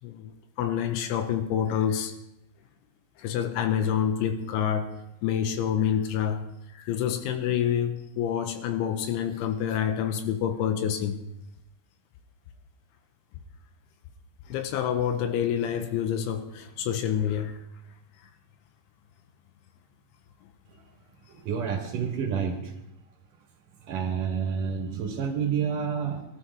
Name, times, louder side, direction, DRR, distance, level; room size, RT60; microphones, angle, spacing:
voice 1, 0.6-2.1 3.2-4.9 5.2-6.5 6.8-11.2 14.5-17.6, left 9 dB, 90° left, 7 dB, 3.5 m, -27 dB
voice 2, 21.3-22.7 23.8-26.2, right 7 dB, 55° right, 1 dB, 2.7 m, -29 dB
22.0 x 12.5 x 3.6 m, 0.83 s
omnidirectional pair, 5.3 m